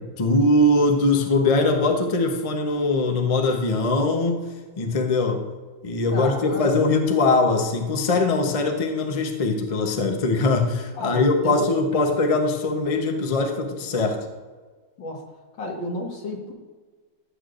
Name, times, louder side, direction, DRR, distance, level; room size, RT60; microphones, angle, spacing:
voice 1, 0.2-4.4 4.8-5.4 5.8-14.2, left 2 dB, 35° left, 3 dB, 0.5 m, -21 dB
voice 2, 6.1-6.8 10.9-11.8 15.0-15.2 15.6-16.5, left 1 dB, 70° left, 0 dB, 2.4 m, -31 dB
14.5 x 8.3 x 2.5 m, 1.4 s
omnidirectional pair, 2.1 m